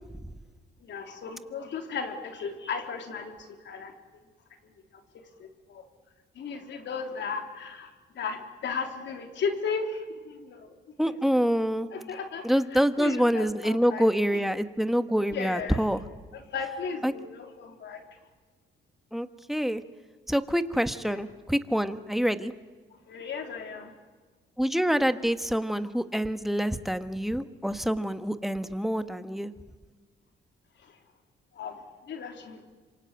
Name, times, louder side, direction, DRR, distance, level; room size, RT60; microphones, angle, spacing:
voice 1, 0.8-3.9 4.9-5.0 5.4-5.9 6.4-7.9 8.2-10.7 11.1-11.6 11.9-14.0 14.3-14.4 15.3-15.8 16.3-18.0 20.9-21.2 23.1-23.9 30.8-31.0 31.5-32.6, left 5 dB, 65° left, 4 dB, 3.6 m, -36 dB
voice 2, 11.0-11.9 12.4-16.0 17.0-17.1 19.1-19.8 20.3-22.5 24.6-29.5, equal, ahead, 10 dB, 1.3 m, -26 dB
26.5 x 24.0 x 9.1 m, 1.4 s
cardioid pair, 90°, 20 cm